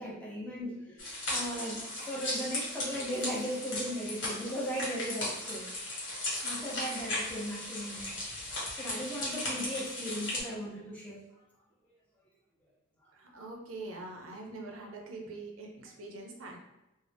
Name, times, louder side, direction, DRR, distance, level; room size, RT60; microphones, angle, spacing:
voice 1, 0.0-5.7 6.3-8.1 8.8-11.2, equal, 5° left, -6 dB, 0.6 m, -37 dB
sound 1, 1.0-10.4, left 1 dB, 65° left, 1.2 m, -36 dB
voice 2, 13.1-16.6, right 2 dB, 85° right, 1 dB, 0.5 m, -44 dB
2.5 x 2.0 x 3.3 m, 0.94 s
head